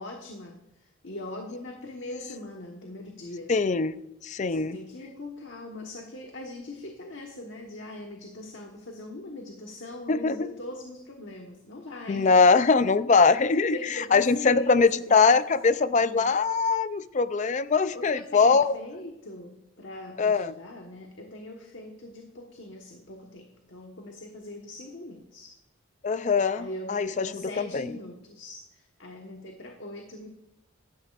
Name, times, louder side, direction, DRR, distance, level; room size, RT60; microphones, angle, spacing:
voice 1, 0.0-3.5 4.5-12.3 13.7-15.4 15.9-16.3 17.9-25.6 26.5-30.3, left 1 dB, 65° left, 1 dB, 1.3 m, -41 dB
voice 2, 3.5-4.8 10.1-10.5 12.1-13.8 14.1-18.7 20.2-20.5 26.0-27.8, left 4 dB, 35° left, 14 dB, 0.4 m, -22 dB
16.0 x 12.5 x 2.5 m, 0.89 s
head